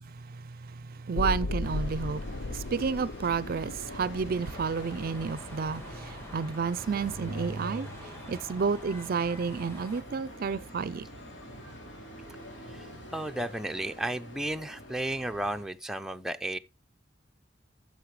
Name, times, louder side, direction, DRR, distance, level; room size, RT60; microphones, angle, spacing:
voice 1, 1.0-7.9 8.3-11.1, right 5 dB, 50° right, 0.4 m, -31 dB
sound 1, 1.1-7.1 7.4-7.5, left 2 dB, 70° left, 0.6 m, -37 dB
sound 2, 1.6-15.7, equal, 85° left, 3.8 m, -45 dB
sound 3, 4.4-10.0, equal, 15° left, 2.2 m, -47 dB
voice 2, 13.1-16.6, right 1 dB, 5° right, 0.5 m, -33 dB
13.0 x 6.5 x 3.2 m
head